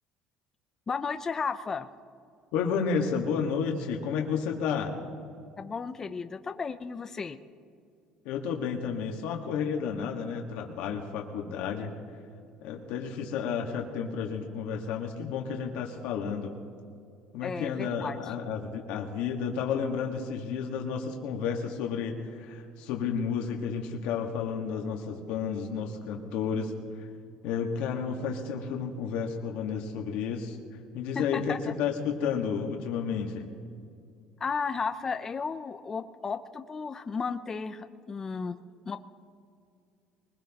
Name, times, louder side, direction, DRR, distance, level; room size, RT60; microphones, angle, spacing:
voice 1, 0.9-1.9 5.6-7.4 17.4-18.2 31.1-31.6 34.4-38.6 38.9-39.0, left 5 dB, 20° left, 9 dB, 0.5 m, -34 dB
voice 2, 2.5-4.9 8.2-11.9 12.6-16.5 17.3-27.1 27.4-30.6 30.9-33.6, left 6 dB, 80° left, 1 dB, 1.5 m, -31 dB
23.5 x 20.5 x 2.9 m, 2.4 s
cardioid pair, 140°, 2 cm